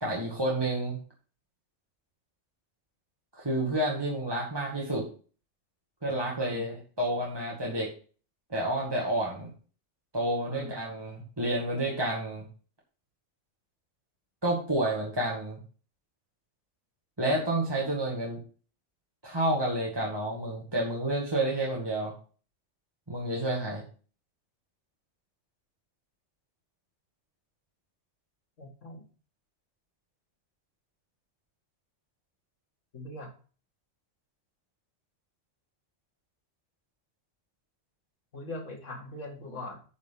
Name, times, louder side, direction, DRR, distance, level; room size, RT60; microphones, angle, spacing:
voice 1, 0.0-1.0 3.3-5.0 6.0-7.9 8.5-9.5 10.1-12.5 14.4-15.6 17.2-18.4 19.2-22.1 23.1-23.8, right 1 dB, 20° right, -4 dB, 2.1 m, -30 dB
voice 2, 10.5-10.8 28.6-29.0 32.9-33.3 38.3-39.8, left 2 dB, 90° left, 1 dB, 2.5 m, -41 dB
10.0 x 4.7 x 5.8 m, 0.38 s
omnidirectional pair, 1.2 m